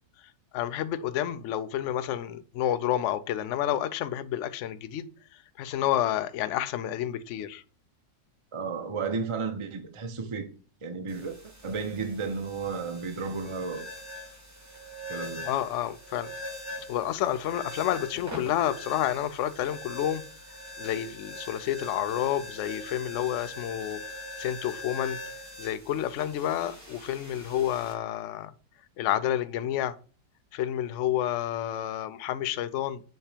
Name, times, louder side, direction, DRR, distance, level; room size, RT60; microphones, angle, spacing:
voice 1, 0.5-5.1 5.6-7.6 15.4-16.3 16.9-20.2 20.8-24.0 24.4-25.2 25.6-28.5 29.0-29.9 30.5-33.0, left 11 dB, 85° left, 0.6 m, -29 dB
voice 2, 8.5-10.5 10.8-11.3 11.6-13.9 15.1-15.5, right 5 dB, 45° right, 0.4 m, -33 dB
sound 1, 11.1-27.9, left 1 dB, 10° right, 2.1 m, -42 dB
7.2 x 3.4 x 5.0 m
omnidirectional pair, 1.9 m